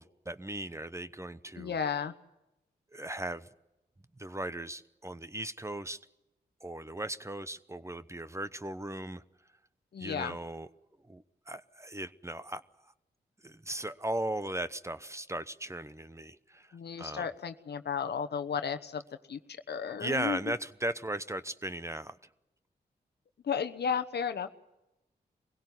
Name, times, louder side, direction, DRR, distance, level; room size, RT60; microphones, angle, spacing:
voice 1, 0.0-1.8 2.9-3.5 4.2-6.0 6.6-9.2 10.0-10.7 11.1-12.6 13.4-16.7 17.0-17.2 20.0-22.2, right 1 dB, 15° right, 14 dB, 0.9 m, -37 dB
voice 2, 1.5-2.1 9.9-10.4 16.7-19.0 19.3-19.4 19.7-20.5 23.4-24.5, left 7 dB, 70° left, 8 dB, 1.1 m, -33 dB
22.5 x 17.0 x 9.6 m, 0.94 s
cardioid pair, 45°, 18 cm